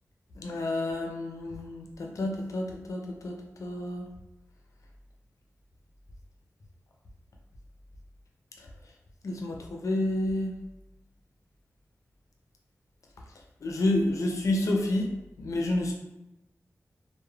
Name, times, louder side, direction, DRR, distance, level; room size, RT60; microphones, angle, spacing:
voice 1, 0.4-4.1 9.2-10.5 13.6-15.1 15.4-16.0, left 1 dB, 75° left, 1 dB, 0.5 m, -29 dB
3.1 x 2.1 x 2.2 m, 0.91 s
cardioid pair, 55°, 5 cm